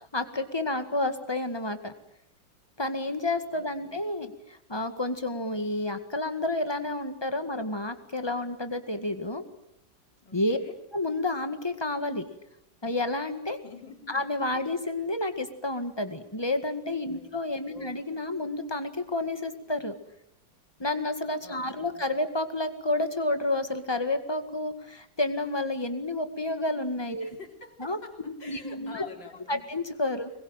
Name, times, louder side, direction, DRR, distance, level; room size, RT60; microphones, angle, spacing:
voice 1, 0.1-1.9 2.8-9.4 10.3-10.6 10.9-12.2 12.8-13.6 14.1-19.9 20.8-27.4 27.8-28.0 28.2-29.1 29.5-30.3, left 2 dB, 15° left, 8 dB, 1.8 m, -30 dB
voice 2, 3.5-4.0 10.2-10.8 13.6-14.3 14.6-14.7 17.1-17.4 17.7-18.0 21.4-22.0 27.2-29.7, left 3 dB, 70° left, 3 dB, 4.3 m, -47 dB
25.5 x 22.0 x 9.1 m, 0.80 s
omnidirectional pair, 2.1 m